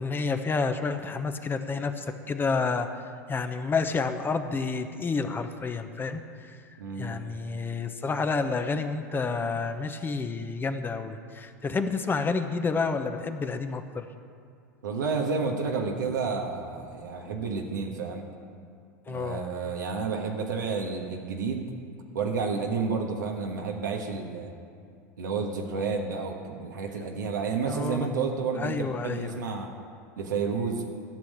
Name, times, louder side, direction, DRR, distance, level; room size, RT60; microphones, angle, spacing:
voice 1, 0.0-2.9 3.3-6.5 7.0-14.1 19.1-19.4 27.7-28.3 28.6-29.4, left 4 dB, 20° left, 8 dB, 0.9 m, -29 dB
voice 2, 6.8-7.2 14.8-18.3 19.1-21.7 22.1-24.5 25.2-29.7 30.2-30.8, right 5 dB, 85° right, 1 dB, 1.4 m, -30 dB
13.5 x 6.4 x 8.5 m, 2.3 s
hypercardioid pair, 95°, 10 cm